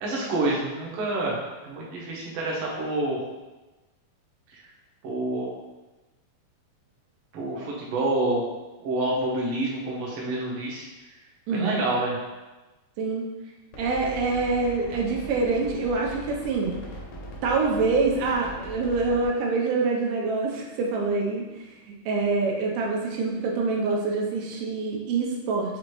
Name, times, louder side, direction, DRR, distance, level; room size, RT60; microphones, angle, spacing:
voice 1, 0.0-1.4 1.6-3.2 4.5-4.7 5.0-5.6 7.3-8.4 8.8-10.9 11.5-12.2, right 2 dB, 70° right, -4 dB, 1.4 m, -28 dB
voice 2, 11.5-11.8 13.0-13.2 13.8-16.7 17.4-21.6 22.1-25.8, right 3 dB, 90° right, -1 dB, 2.3 m, -25 dB
sound 1, 13.7-19.3, equal, 70° left, 2.1 m, -40 dB
6.1 x 2.5 x 3.1 m, 1.1 s
omnidirectional pair, 3.8 m